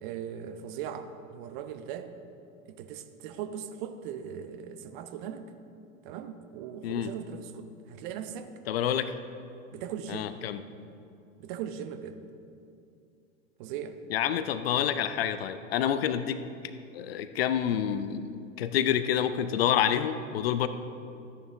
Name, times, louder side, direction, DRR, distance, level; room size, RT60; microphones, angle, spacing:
voice 1, 0.0-2.1 2.7-5.5 6.0-8.5 9.7-10.3 11.4-12.2 13.6-14.0, right 8 dB, 40° right, 9 dB, 0.7 m, -39 dB
voice 2, 8.7-9.1 10.1-10.6 14.1-16.4 16.9-20.7, left 9 dB, 50° left, 12 dB, 0.5 m, -28 dB
13.5 x 9.7 x 3.4 m, 2.6 s
figure-of-eight pair, 90°, 40 cm